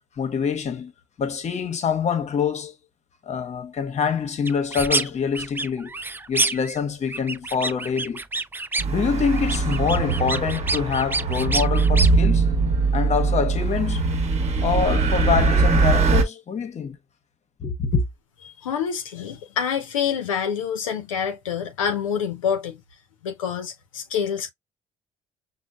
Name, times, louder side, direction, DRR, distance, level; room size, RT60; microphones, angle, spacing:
voice 1, 0.2-0.9 1.2-2.7 3.3-5.9 6.3-8.2 8.9-12.5 12.9-14.1 14.6-17.0 17.6-18.0, left 6 dB, 45° left, 0.9 m, -25 dB
sound 1, 4.5-5.1 5.3-6.8 7.1-9.0 9.3-12.1, right 3 dB, 15° right, 0.4 m, -27 dB
sound 2, 8.8-16.2, right 4 dB, 45° right, 1.0 m, -21 dB
voice 2, 18.5-22.8 23.2-24.5, left 7 dB, 85° left, 0.6 m, -27 dB
6.2 x 2.1 x 2.2 m
hypercardioid pair, 50°, 16 cm